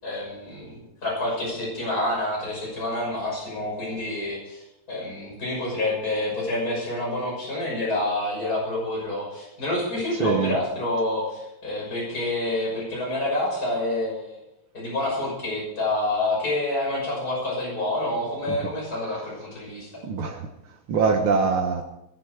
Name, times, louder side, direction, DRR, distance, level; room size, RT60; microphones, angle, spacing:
voice 1, 0.0-14.4 14.7-19.9, left 1 dB, 45° left, -4 dB, 6.7 m, -28 dB
voice 2, 10.2-10.6 18.5-18.6 20.0-20.5 20.9-21.8, right 5 dB, 80° right, 3 dB, 2.1 m, -23 dB
20.5 x 8.2 x 6.4 m, 0.86 s
omnidirectional pair, 2.3 m